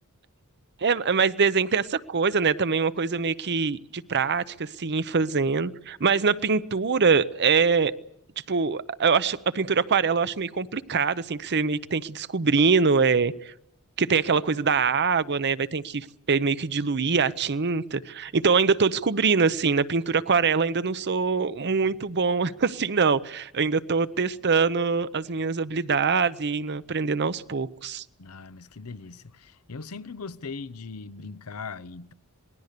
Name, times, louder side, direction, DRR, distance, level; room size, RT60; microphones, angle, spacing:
voice 1, 0.8-7.9 8.5-13.5 14.0-28.0, right 5 dB, 50° right, 0.8 m, -24 dB
voice 2, 28.2-32.1, left 4 dB, 75° left, 0.8 m, -39 dB
27.0 x 20.5 x 6.7 m
head